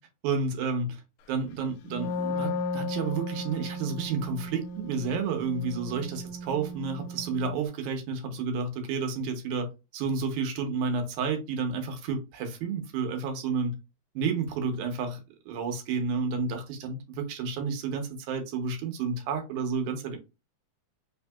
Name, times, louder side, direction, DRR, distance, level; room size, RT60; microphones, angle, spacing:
voice 1, 0.2-1.0 1.3-13.8 14.2-15.2 15.5-20.2, right 5 dB, 90° right, 2.2 m, -31 dB
Wind instrument woodwind instrument, 1.8-7.5, left 1 dB, 80° left, 1.8 m, -35 dB
5.0 x 2.7 x 2.2 m
omnidirectional pair, 3.3 m